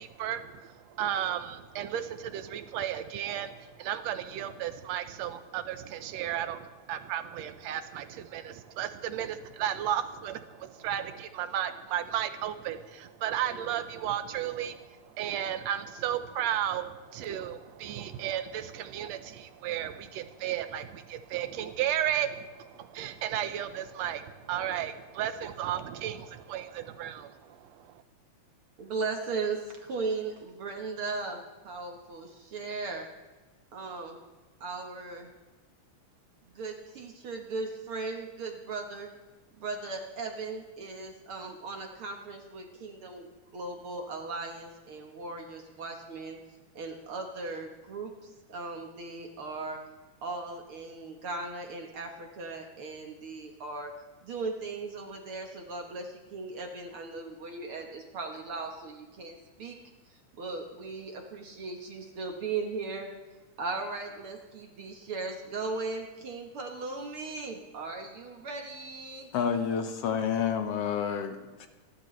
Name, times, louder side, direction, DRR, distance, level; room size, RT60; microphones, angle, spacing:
voice 1, 0.0-28.0, right 10 dB, 70° right, 10 dB, 1.8 m, -34 dB
voice 2, 28.8-33.1 33.7-34.2 34.6-35.3 36.6-39.1 39.6-43.3 43.5-46.4 46.8-49.8 50.2-53.9 54.2-59.8 60.4-63.1 63.6-69.3, right 3 dB, 55° right, 3 dB, 1.8 m, -37 dB
voice 3, 69.3-71.7, left 7 dB, 65° left, 7 dB, 1.7 m, -29 dB
28.5 x 11.5 x 3.2 m, 1.2 s
omnidirectional pair, 3.6 m